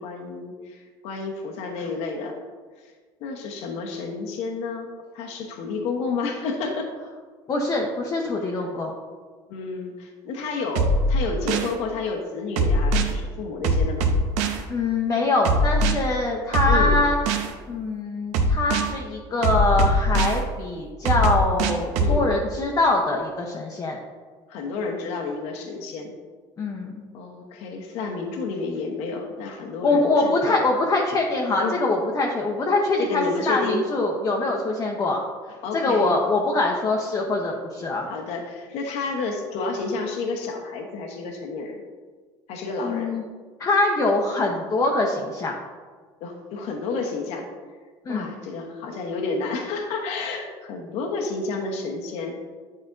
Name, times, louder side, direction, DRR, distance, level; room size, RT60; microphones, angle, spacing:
voice 1, 0.0-2.4 2.8-2.9 3.2-4.9 5.1-6.9 9.5-14.1 16.6-17.0 22.0-22.3 24.5-26.1 27.1-30.6 31.6-31.8 33.0-33.8 35.6-36.2 38.1-41.8 42.5-43.2 46.2-47.5 48.1-52.4, left 4 dB, 65° left, 2 dB, 1.0 m, -30 dB
voice 2, 7.5-8.9 14.7-17.2 17.7-24.0 26.6-27.0 29.8-35.2 35.7-38.1 42.8-43.2 43.6-45.6 48.0-48.3, left 2 dB, 30° left, -1 dB, 0.8 m, -23 dB
sound 1, 10.8-11.7 12.6-13.1 13.6-14.6 15.5-15.9 16.5-17.5 18.3-18.9 19.4-20.4 21.1-22.2, right 1 dB, 75° right, 0.7 m, -21 dB
9.8 x 4.2 x 2.5 m, 1.5 s
cardioid pair, 125°, 12 cm